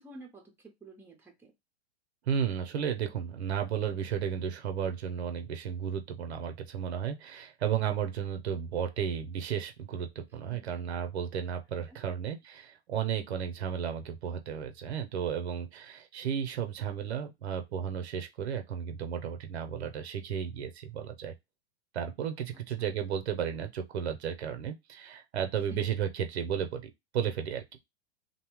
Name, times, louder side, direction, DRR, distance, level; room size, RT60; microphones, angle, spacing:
voice 1, 0.0-1.5 10.5-10.6 11.9-12.0 22.8-22.9 25.7-25.8, right 1 dB, 5° right, 0.6 m, -50 dB
voice 2, 2.3-21.3 21.9-27.6, right 8 dB, 80° right, 0.7 m, -33 dB
2.7 x 2.0 x 3.0 m
hypercardioid pair, 120°, 32 cm